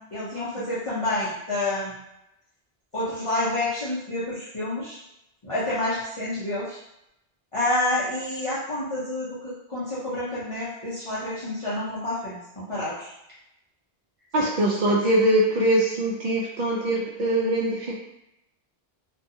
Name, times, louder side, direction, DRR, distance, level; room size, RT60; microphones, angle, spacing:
voice 1, 0.0-2.0 2.9-5.0 5.4-6.8 7.5-13.1 14.4-14.5 14.8-14.9, left 1 dB, 35° left, -11 dB, 0.6 m, -29 dB
voice 2, 14.3-18.0, right 1 dB, 55° right, -3 dB, 0.6 m, -22 dB
2.6 x 2.3 x 2.6 m, 0.85 s
omnidirectional pair, 1.0 m